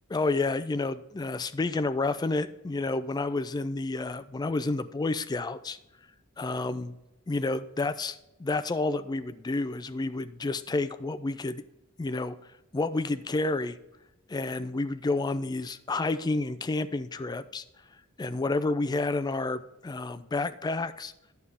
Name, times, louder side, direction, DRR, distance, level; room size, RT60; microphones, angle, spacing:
voice 1, 0.1-5.8 6.4-6.9 7.3-11.6 12.0-12.4 12.7-13.8 14.3-17.6 18.2-21.1, left 3 dB, 20° left, 12 dB, 0.3 m, -30 dB
9.5 x 6.8 x 3.4 m, 0.96 s
head